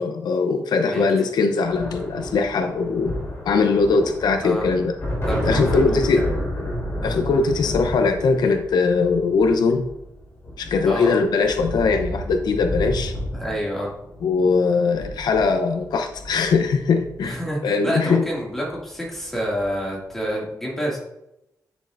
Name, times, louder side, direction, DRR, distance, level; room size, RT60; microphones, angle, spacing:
voice 1, 0.0-3.2 3.4-4.9 5.4-6.2 7.0-9.9 10.6-13.1 14.2-18.2, left 4 dB, 80° left, 6 dB, 0.7 m, -21 dB
sound 1, 1.6-17.4 18.5-18.8 19.1-19.8, equal, 35° left, 2.9 m, -31 dB
voice 2, 5.2-6.1 10.9-11.1 13.3-13.9 17.2-21.0, equal, 5° left, -4 dB, 2.3 m, -28 dB
10.0 x 6.4 x 2.6 m, 0.84 s
wide cardioid pair, 175°, 7 cm